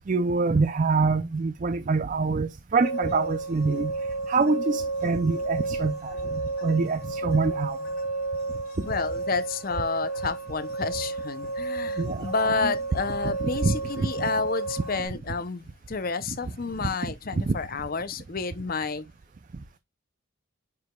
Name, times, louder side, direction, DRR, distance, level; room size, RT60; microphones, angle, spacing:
voice 1, 0.1-3.9 4.3-7.8 8.8-8.9 12.0-12.3 13.6-14.1 17.5-17.6, right 4 dB, 35° right, 0.4 m, -25 dB
sound 1, 2.8-15.1, right 3 dB, 85° left, 3.4 m, -32 dB
voice 2, 8.9-19.1, left 4 dB, 40° left, 0.6 m, -30 dB
9.4 x 4.9 x 2.3 m
head